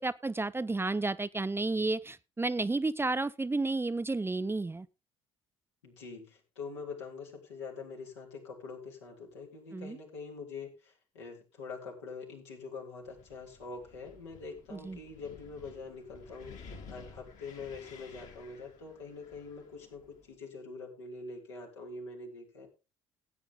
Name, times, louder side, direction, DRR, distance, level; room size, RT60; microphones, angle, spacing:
voice 1, 0.0-4.9 9.7-10.0 14.7-15.0, right 3 dB, 15° right, 15 dB, 0.7 m, -32 dB
voice 2, 5.8-22.7, left 4 dB, 85° left, -1 dB, 3.6 m, -44 dB
Wind, 13.0-20.3, left 5 dB, 60° left, 3.2 m, -53 dB
16.0 x 8.9 x 3.7 m, 0.29 s
hypercardioid pair, 50°, 14 cm